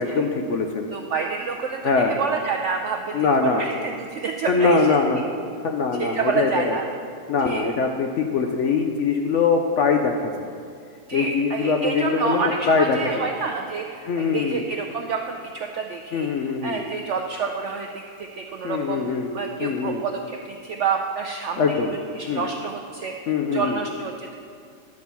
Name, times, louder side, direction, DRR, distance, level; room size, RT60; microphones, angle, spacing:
voice 1, 0.0-0.9 1.8-2.2 3.1-3.6 4.5-5.2 5.6-6.8 7.3-10.3 11.1-13.3 14.1-14.6 16.1-16.8 18.6-20.0 21.6-21.9 22.3-22.5 23.3-23.8, left 4 dB, 65° left, 3 dB, 0.7 m, -22 dB
voice 2, 0.9-1.8 2.1-5.0 6.0-6.8 7.4-7.6 11.1-21.6 22.1-24.4, right 5 dB, 75° right, 3 dB, 0.6 m, -28 dB
10.5 x 4.4 x 6.9 m, 2.4 s
omnidirectional pair, 1.7 m